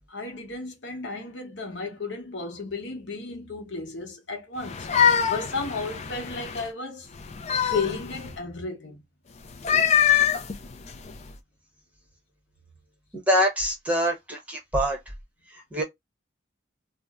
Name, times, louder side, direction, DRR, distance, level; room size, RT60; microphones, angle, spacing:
voice 1, 0.1-4.9 5.3-7.1 7.6-9.0, left 4 dB, 60° left, 0.9 m, -33 dB
sound 1, 4.6-6.7 7.2-8.4 9.5-11.3, left 8 dB, 35° left, 0.3 m, -24 dB
voice 2, 13.1-15.0 15.5-15.8, equal, 5° right, 0.8 m, -25 dB
2.5 x 2.0 x 3.4 m
head